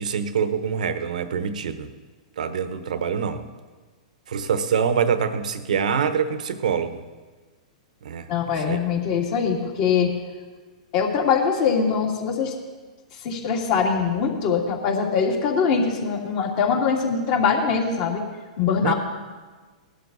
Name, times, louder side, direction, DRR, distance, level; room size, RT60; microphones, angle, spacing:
voice 1, 0.0-1.9 2.4-3.4 4.3-7.0 8.0-8.3 8.7-8.8 18.8-18.9, right 7 dB, 80° right, 10 dB, 1.1 m, -25 dB
voice 2, 8.3-10.1 10.9-12.5 13.2-18.2 18.6-18.9, left 6 dB, 50° left, 0 dB, 2.8 m, -22 dB
19.0 x 12.0 x 4.1 m, 1.4 s
hypercardioid pair, 130°, 4 cm